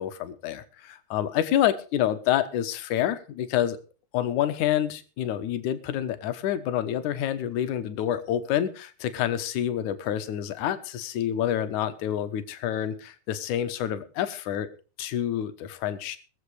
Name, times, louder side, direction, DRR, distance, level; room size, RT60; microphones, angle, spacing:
voice 1, 0.0-3.8 4.1-14.7 15.0-16.2, left 11 dB, 65° left, 10 dB, 2.1 m, -28 dB
21.0 x 7.4 x 4.9 m, 0.36 s
omnidirectional pair, 4.6 m